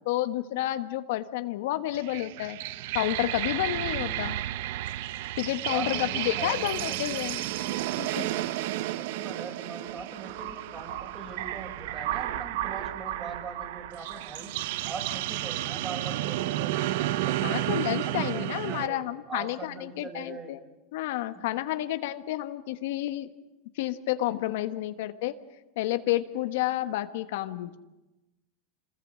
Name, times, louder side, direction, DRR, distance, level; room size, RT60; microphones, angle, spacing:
voice 1, 0.0-2.6 2.9-4.4 5.4-7.4 8.0-8.5 17.4-20.6 20.9-23.3 23.8-25.3 25.8-27.8, left 15 dB, 75° left, 10 dB, 1.2 m, -30 dB
sound 1, 1.9-18.9, right 14 dB, 70° right, 0.7 m, -32 dB
voice 2, 5.7-7.3 8.8-14.5 14.8-17.8 18.0-20.6 21.3-21.4 21.8-21.9, right 4 dB, 30° right, 2 dB, 7.0 m, -41 dB
26.5 x 20.0 x 7.4 m, 1.0 s
supercardioid pair, 125°, 0 cm